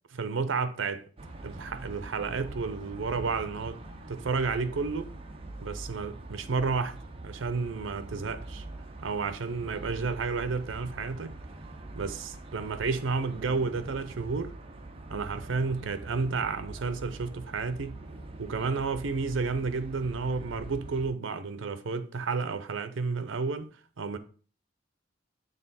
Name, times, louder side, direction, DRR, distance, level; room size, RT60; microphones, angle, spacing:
voice 1, 0.1-1.0 1.4-3.8 4.1-5.1 5.6-8.6 9.0-11.3 11.9-14.6 15.1-18.0 18.4-24.2, right 4 dB, 85° right, 0.6 m, -31 dB
sound 1, 1.2-21.1, right 2 dB, 30° right, 0.7 m, -44 dB
6.6 x 3.6 x 4.1 m
head